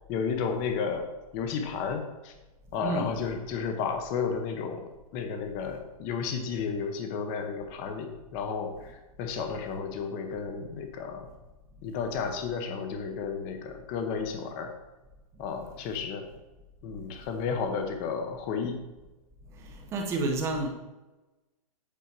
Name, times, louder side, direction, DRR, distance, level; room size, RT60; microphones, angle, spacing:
voice 1, 0.1-2.3 2.7-8.9 9.2-11.3 11.8-14.7 15.4-16.3 16.8-18.8, left 6 dB, 25° left, 6 dB, 0.8 m, -32 dB
voice 2, 2.8-3.2 19.9-20.7, right 2 dB, 15° right, 3 dB, 0.9 m, -29 dB
8.4 x 4.5 x 6.0 m, 1.1 s
hypercardioid pair, 165°, 19 cm